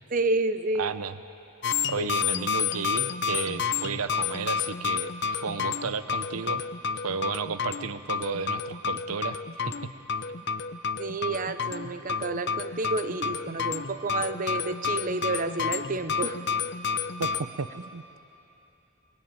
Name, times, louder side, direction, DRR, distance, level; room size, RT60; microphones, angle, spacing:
voice 1, 0.1-0.9 11.0-16.4, right 3 dB, 40° right, 10 dB, 0.7 m, -30 dB
voice 2, 0.8-1.1 1.9-5.1 5.4-6.6 7.0-9.4 9.6-9.9 17.2-18.2, right 5 dB, 80° right, 13 dB, 0.7 m, -33 dB
sound 1, 1.6-17.4, left 6 dB, 50° left, 0.7 m, -30 dB
21.5 x 21.0 x 9.2 m, 2.8 s
head